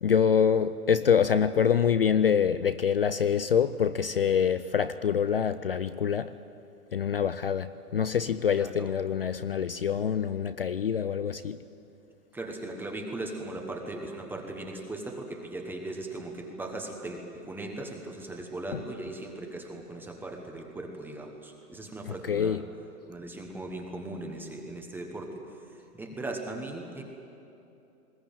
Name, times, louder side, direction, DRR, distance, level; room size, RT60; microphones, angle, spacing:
voice 1, 0.0-6.3 6.9-11.6 18.7-18.8 22.3-22.6, left 7 dB, 40° left, 0.4 m, -25 dB
voice 2, 8.6-8.9 12.3-22.6 23.1-25.4 25.9-27.0, right 2 dB, 5° right, 1.0 m, -38 dB
21.0 x 18.5 x 8.9 m
hypercardioid pair, 145°, 47 cm